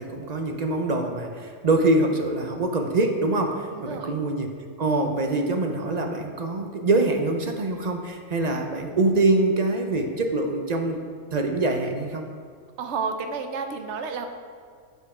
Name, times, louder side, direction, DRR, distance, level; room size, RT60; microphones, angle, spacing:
voice 1, 0.0-4.5 4.8-12.2, right 2 dB, 45° right, 4 dB, 0.6 m, -24 dB
voice 2, 3.7-4.2 12.8-14.3, right 5 dB, 65° right, 6 dB, 1.0 m, -31 dB
8.4 x 5.3 x 4.9 m, 2.1 s
omnidirectional pair, 1.3 m